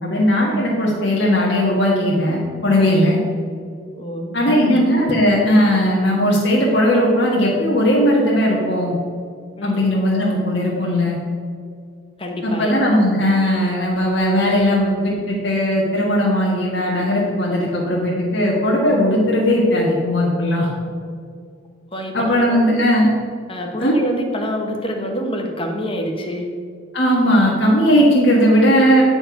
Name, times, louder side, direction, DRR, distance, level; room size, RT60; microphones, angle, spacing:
voice 1, 0.0-3.2 4.3-8.9 9.6-11.2 12.4-20.7 22.1-23.1 23.8-24.0 26.9-29.0, equal, 60° left, -5 dB, 1.5 m, -17 dB
voice 2, 3.9-4.9 9.6-9.8 12.2-12.7 21.9-22.6 23.5-26.5, equal, 25° left, 2 dB, 1.0 m, -26 dB
9.8 x 4.5 x 5.7 m, 2.2 s
head